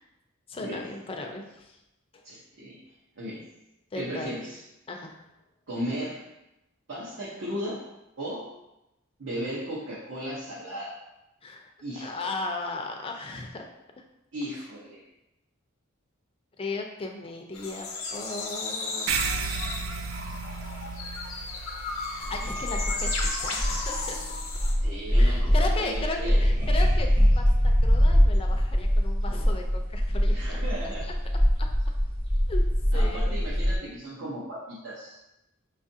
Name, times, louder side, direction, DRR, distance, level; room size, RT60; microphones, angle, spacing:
voice 1, 0.5-1.8 2.1-2.2 3.9-4.3 4.9-5.2 11.4-11.7 12.0-13.7 16.6-19.1 22.3-24.2 25.2-27.1 27.4-30.6 31.0-31.1 31.6-31.7 32.5-32.6 32.9-33.4, left 3 dB, 25° left, 2 dB, 0.4 m, -36 dB
voice 2, 2.2-2.8 3.2-3.5 3.9-4.6 5.7-6.2 6.9-7.8 8.2-8.5 9.2-11.0 11.8-12.3 14.3-15.0 24.8-26.4 30.3-31.1 32.9-35.2, equal, 65° right, -7 dB, 0.8 m, -36 dB
sound 1, 17.5-24.7, left 3 dB, 90° left, 0.7 m, -34 dB
sound 2, 19.1-23.9, right 5 dB, 85° right, 0.3 m, -34 dB
sound 3, 22.2-33.8, equal, 25° right, 0.7 m, -23 dB
5.2 x 2.4 x 2.7 m, 0.93 s
head